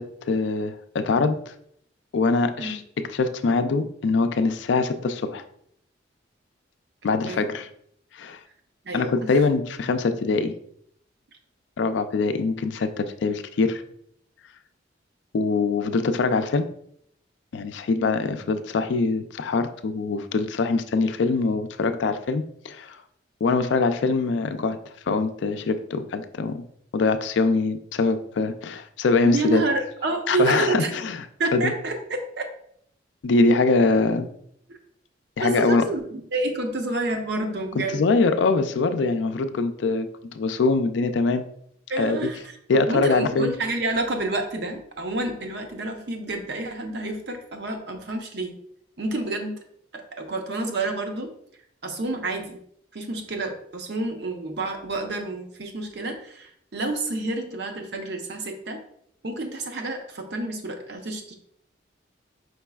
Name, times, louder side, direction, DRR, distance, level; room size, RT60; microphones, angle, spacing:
voice 1, 0.0-1.5 2.1-2.8 3.1-5.4 7.0-7.7 8.1-8.4 8.9-10.6 11.8-13.8 15.3-16.7 17.5-23.0 23.4-24.8 25.1-26.6 26.9-29.6 30.3-31.3 31.5-31.7 33.2-34.3 35.4-35.9 37.8-41.4 42.0-42.2 42.7-43.5, left 3 dB, 70° left, 9 dB, 0.4 m, -23 dB
voice 2, 8.8-9.3 17.9-18.1 29.2-30.9 31.4-32.5 35.4-38.0 41.9-48.5 49.0-49.6 49.9-51.3 51.8-52.6 52.9-58.8 59.2-61.3, right 2 dB, 60° right, 4 dB, 0.7 m, -29 dB
5.2 x 4.0 x 2.3 m, 0.69 s
head